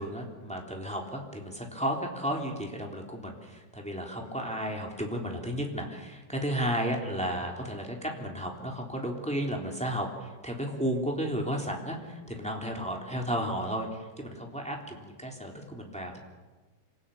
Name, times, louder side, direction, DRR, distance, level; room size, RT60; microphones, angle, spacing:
voice 1, 0.0-16.2, equal, ahead, 1 dB, 2.4 m, -33 dB
27.0 x 19.0 x 8.6 m, 1.3 s
omnidirectional pair, 5.7 m